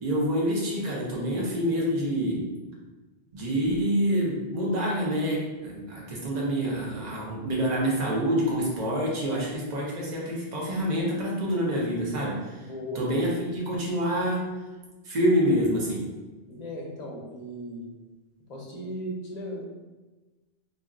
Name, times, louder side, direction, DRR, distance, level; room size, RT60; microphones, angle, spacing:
voice 1, 0.0-2.5 3.3-12.7 12.9-14.5 15.0-16.1, equal, 45° right, -4 dB, 0.8 m, -27 dB
voice 2, 12.6-13.0 16.5-17.9 18.5-19.6, equal, 50° left, -2 dB, 0.6 m, -36 dB
2.4 x 2.1 x 3.6 m, 1.2 s
omnidirectional pair, 1.1 m